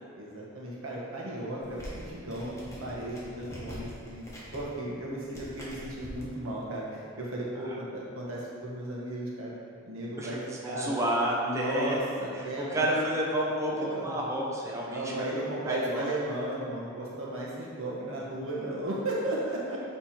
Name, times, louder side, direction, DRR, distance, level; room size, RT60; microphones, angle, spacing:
voice 1, 0.2-4.3 4.5-9.5 9.8-11.0 11.4-12.8 13.7-14.2 14.9-19.8, right 1 dB, 90° right, -5 dB, 1.4 m, -35 dB
sound 1, 1.6-6.2, equal, 15° left, 1.2 m, -44 dB
voice 2, 10.2-12.0 12.6-15.2 15.7-16.1, right 1 dB, 15° right, -4 dB, 0.7 m, -30 dB
7.3 x 3.4 x 4.4 m, 2.5 s
head